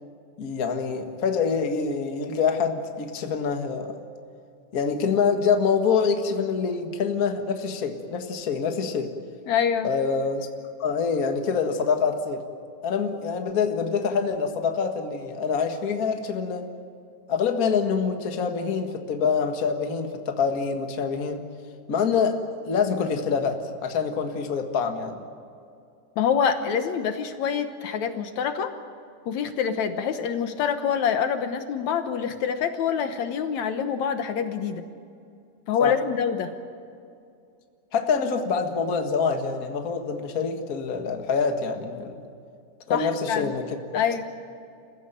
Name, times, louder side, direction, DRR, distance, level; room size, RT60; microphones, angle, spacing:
voice 1, 0.4-3.9 4.7-9.1 9.8-10.5 10.8-12.4 12.8-16.7 17.3-21.5 21.9-22.4 22.6-25.2 35.8-36.0 37.9-42.3 42.9-43.8, left 5 dB, 35° left, 5 dB, 1.6 m, -25 dB
voice 2, 9.5-9.9 26.2-28.7 29.3-34.8 35.7-36.5 42.9-43.5 43.9-44.2, left 7 dB, 70° left, 8 dB, 2.3 m, -26 dB
28.0 x 16.0 x 9.2 m, 2.4 s
omnidirectional pair, 3.5 m